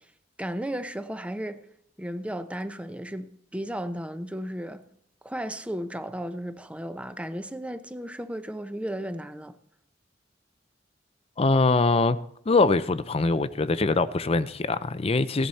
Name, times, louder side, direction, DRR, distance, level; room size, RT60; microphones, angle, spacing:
voice 1, 0.4-1.6 2.0-4.8 5.2-9.5, equal, 5° right, 0.7 m, -34 dB
voice 2, 11.4-12.2 12.5-15.5, left 3 dB, 35° left, 0.5 m, -23 dB
17.0 x 11.0 x 4.2 m
head